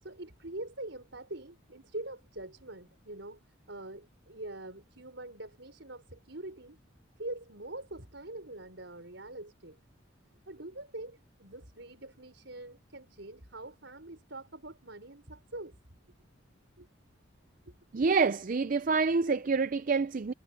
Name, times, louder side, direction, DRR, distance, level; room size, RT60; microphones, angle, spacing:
voice 1, 0.0-3.4 3.7-6.8 7.2-9.8 10.5-15.8 16.8-16.9 17.7-17.8, right 2 dB, 65° right, 5.6 m, -44 dB
voice 2, 17.9-20.3, right 4 dB, 45° right, 0.5 m, -27 dB
head